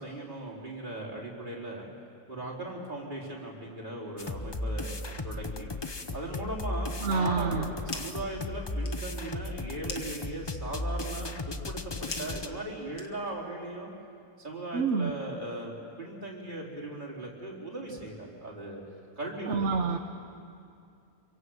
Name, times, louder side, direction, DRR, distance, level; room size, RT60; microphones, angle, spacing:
voice 1, 0.0-1.9 2.3-5.0 5.2-5.7 6.1-11.9 12.2-13.9 14.4-18.8 19.2-19.8, right 2 dB, 25° right, -3 dB, 4.4 m, -38 dB
sound 1, 4.2-12.5, left 2 dB, 35° left, 0.4 m, -36 dB
voice 2, 7.0-7.7 14.7-15.1 19.5-20.0, right 5 dB, 50° right, 5 dB, 1.1 m, -27 dB
sound 2, 7.9-8.3 8.6-13.5, left 5 dB, 80° left, 2.2 m, -45 dB
27.0 x 23.5 x 8.0 m, 2.4 s
omnidirectional pair, 1.9 m